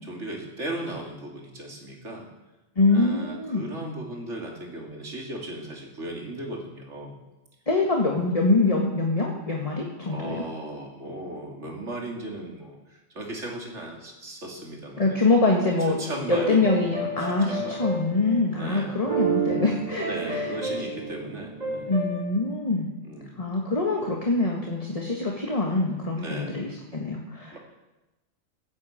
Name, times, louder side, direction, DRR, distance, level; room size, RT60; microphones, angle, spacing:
voice 1, 0.0-2.3 2.9-7.2 10.0-15.2 16.0-16.6 17.2-17.8 18.5-19.0 20.0-21.9 23.0-23.4 26.2-26.6 27.5-27.6, right 1 dB, 75° right, 0 dB, 3.2 m, -36 dB
voice 2, 2.8-3.7 7.7-10.4 15.0-16.0 16.3-20.5 21.9-22.9 23.4-27.6, left 3 dB, 30° left, -1 dB, 1.7 m, -24 dB
sound 1, 15.9-18.5 18.9-22.2, right 3 dB, 35° right, 3.5 m, -31 dB
15.5 x 8.7 x 8.5 m, 1.0 s
omnidirectional pair, 1.2 m